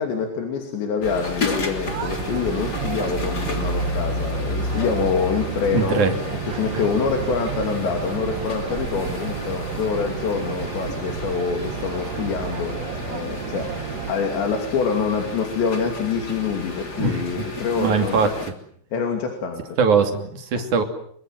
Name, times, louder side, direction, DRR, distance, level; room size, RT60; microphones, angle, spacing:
voice 1, 0.0-18.3 18.9-19.6 20.6-20.7, left 5 dB, 65° left, 4 dB, 4.8 m, -26 dB
sound 1, 1.0-18.5, left 2 dB, 25° left, 2.7 m, -32 dB
sound 2, 1.8-14.1, right 8 dB, 85° right, 1.5 m, -32 dB
voice 2, 5.7-6.1 6.5-6.8 17.0-17.2 17.8-18.3 19.8-20.8, right 5 dB, 45° right, 6 dB, 3.5 m, -21 dB
26.5 x 24.5 x 7.7 m, 0.65 s
omnidirectional pair, 5.7 m